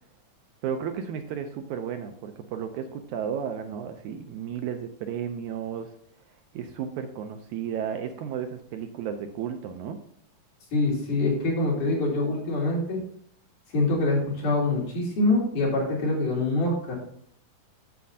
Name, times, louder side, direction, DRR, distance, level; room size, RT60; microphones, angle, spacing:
voice 1, 0.6-5.9 6.5-10.0, right 8 dB, 80° right, 6 dB, 1.9 m, -33 dB
voice 2, 10.7-13.0 13.7-17.0, left 2 dB, 70° left, -5 dB, 4.6 m, -25 dB
9.3 x 7.3 x 2.7 m, 0.64 s
omnidirectional pair, 3.8 m